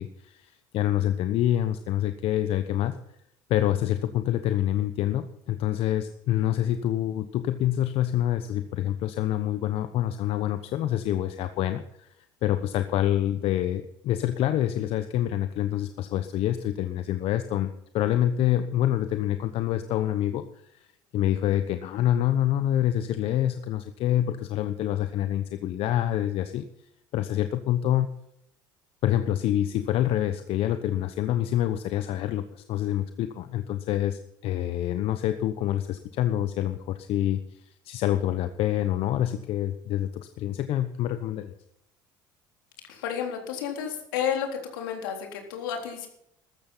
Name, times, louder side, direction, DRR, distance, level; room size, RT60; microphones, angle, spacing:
voice 1, 0.0-3.0 3.5-12.1 12.4-20.9 21.1-26.6 27.1-28.1 29.0-41.5, left 12 dB, 65° left, 10 dB, 1.1 m, -26 dB
voice 2, 42.9-44.5 44.7-46.1, left 8 dB, 85° left, 3 dB, 3.7 m, -31 dB
14.0 x 14.0 x 5.7 m, 0.76 s
hypercardioid pair, 75°, 11 cm